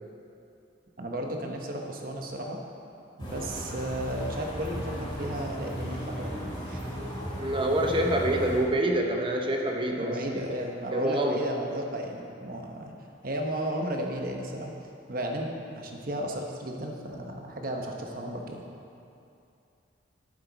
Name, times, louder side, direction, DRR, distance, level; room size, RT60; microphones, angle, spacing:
voice 1, 1.0-2.6 3.2-6.8 10.0-12.9 13.2-14.7 15.1-18.7, right 1 dB, 45° right, 1 dB, 1.0 m, -34 dB
sound 1, 3.2-8.6, equal, 25° left, 2.4 m, -36 dB
voice 2, 7.4-10.7 10.9-11.4, right 1 dB, 25° right, 1 dB, 0.7 m, -27 dB
12.0 x 7.5 x 4.0 m, 2.6 s
head